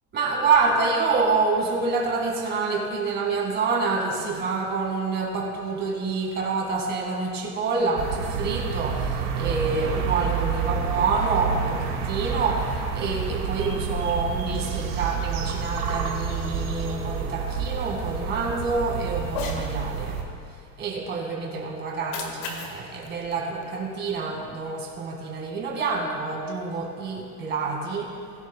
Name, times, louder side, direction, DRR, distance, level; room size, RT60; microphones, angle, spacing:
voice 1, 0.1-20.2 20.8-28.2, right 4 dB, 20° right, 0 dB, 1.8 m, -27 dB
sound 1, 8.0-20.2, right 6 dB, 45° right, 2.1 m, -29 dB
Cat, 19.2-19.7 21.9-24.2, left 5 dB, 50° left, 1.8 m, -36 dB
20.5 x 10.5 x 2.2 m, 2.2 s
supercardioid pair, 165°, 49 cm